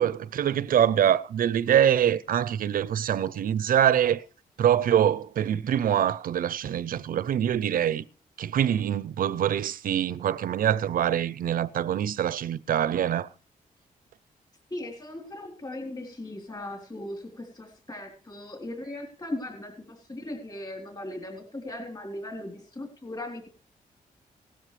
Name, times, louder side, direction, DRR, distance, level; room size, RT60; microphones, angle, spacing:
voice 1, 0.0-4.3 4.6-8.1 8.4-13.3, right 10 dB, 75° right, 0.6 m, -24 dB
voice 2, 14.7-23.5, left 1 dB, 25° left, 3.9 m, -38 dB
18.0 x 12.5 x 3.3 m
wide cardioid pair, 120°, 15 cm